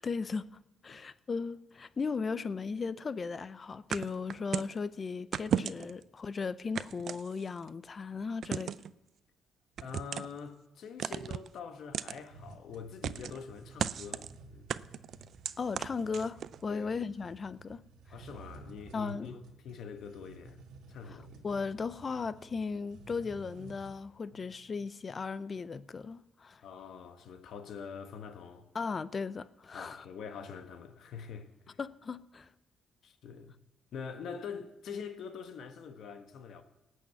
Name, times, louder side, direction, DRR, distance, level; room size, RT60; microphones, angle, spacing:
voice 1, 0.0-8.7 15.6-17.8 18.9-19.3 21.4-26.6 28.7-30.1 31.8-32.5, left 5 dB, 40° left, 0.6 m, -36 dB
sound 1, 3.9-4.8 5.3-6.0 6.7-7.7 8.4-8.9 9.8-10.4 11.0-11.5 11.9-12.2 13.0-13.4 13.8-14.3 14.7-16.6, right 8 dB, 60° right, 0.4 m, -35 dB
voice 2, 9.8-14.7 16.7-16.9 18.1-20.6 20.9-21.4 24.4-24.5 26.6-28.7 29.7-31.8 33.0-33.5 33.9-36.6, left 6 dB, 70° left, 1.3 m, -45 dB
sound 2, 12.3-24.0, right 3 dB, 90° right, 1.4 m, -54 dB
18.0 x 6.4 x 8.2 m
cardioid pair, 90°, 0 cm